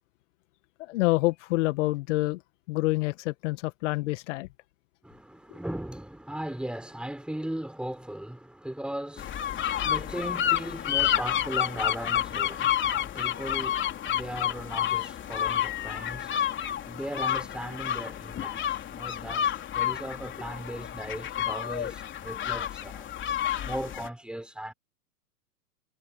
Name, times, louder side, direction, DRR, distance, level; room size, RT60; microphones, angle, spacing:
voice 1, 0.8-2.4 2.7-4.5, left 21 dB, 50° left, 1.8 m, -27 dB
voice 2, 5.0-23.1 23.6-24.7, right 1 dB, ahead, 5.1 m, -38 dB
sound 1, 9.2-24.1, left 10 dB, 25° left, 3.7 m, -30 dB
hypercardioid pair, 115°, 45 cm